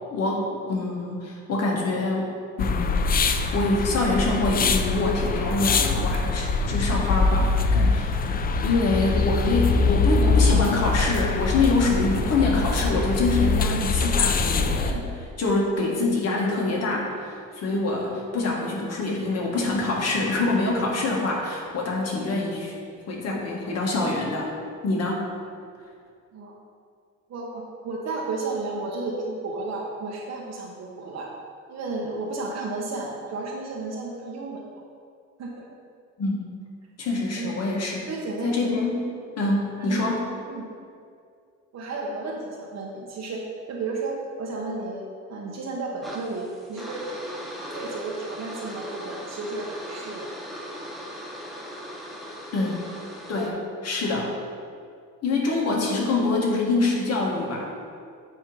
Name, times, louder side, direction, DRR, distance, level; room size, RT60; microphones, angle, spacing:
voice 1, 0.1-3.1 3.5-8.1 8.6-22.7 23.1-24.5 24.8-25.3 36.2-36.4 37.0-38.0 38.4-39.0 39.4-40.2 52.5-52.8 53.3-54.3 55.2-57.7, left 2 dB, 50° left, -2 dB, 1.7 m, -25 dB
sound 1, 2.6-14.9, left 4 dB, 30° left, 0.4 m, -23 dB
voice 2, 27.3-31.3 31.7-34.6 35.4-35.7 37.4-37.7 38.1-38.6 39.8-40.1 40.5-40.7 41.7-43.4 43.7-47.1 47.7-50.3, right 3 dB, 55° right, -2 dB, 1.1 m, -33 dB
sound 2, 46.0-53.5, equal, ahead, 1.0 m, -38 dB
8.2 x 3.1 x 5.5 m, 2.3 s
cardioid pair, 105°, 32 cm